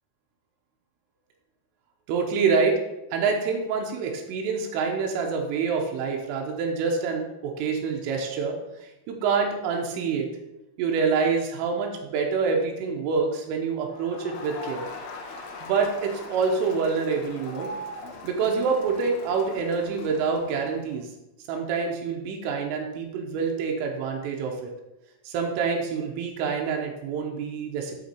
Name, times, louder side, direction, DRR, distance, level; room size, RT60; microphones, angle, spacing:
voice 1, 2.1-2.8 3.1-10.3 10.8-14.9 15.6-17.7 18.2-21.1 21.5-24.7 25.3-28.0, right 5 dB, 85° right, 1 dB, 3.6 m, -26 dB
Crowd, 13.9-20.9, left 2 dB, 70° left, 2.8 m, -40 dB
7.9 x 5.7 x 4.5 m, 0.92 s
omnidirectional pair, 5.6 m